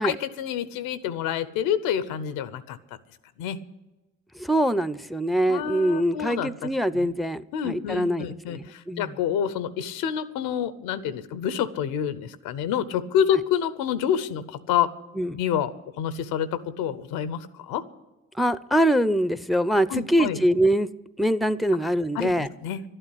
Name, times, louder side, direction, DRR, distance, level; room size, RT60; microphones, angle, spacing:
voice 1, 0.0-2.8 3.4-3.6 5.5-7.1 7.5-14.9 15.3-15.7 16.0-17.8 19.9-20.4 22.1-22.9, left 9 dB, 85° left, 15 dB, 0.7 m, -28 dB
voice 2, 4.4-9.1 15.2-15.4 18.4-20.9 21.2-22.5, right 1 dB, ahead, 17 dB, 0.6 m, -24 dB
12.0 x 8.8 x 10.0 m, 1.1 s
supercardioid pair, 50°, 34 cm